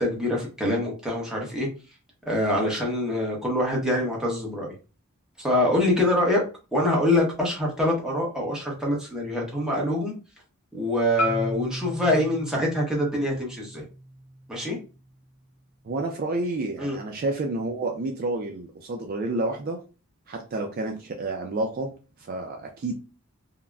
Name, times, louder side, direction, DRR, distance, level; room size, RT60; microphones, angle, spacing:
voice 1, 0.0-1.7 2.3-4.7 5.4-6.4 6.7-10.1 10.7-13.8 14.5-14.8 16.8-17.0, left 1 dB, 5° right, 0.8 m, -25 dB
Marimba xylophone, 11.2-15.4, equal, 80° left, 1.0 m, -35 dB
voice 2, 15.8-19.8 20.3-21.9 22.2-23.0, right 2 dB, 40° right, 0.3 m, -29 dB
3.7 x 2.0 x 2.2 m
head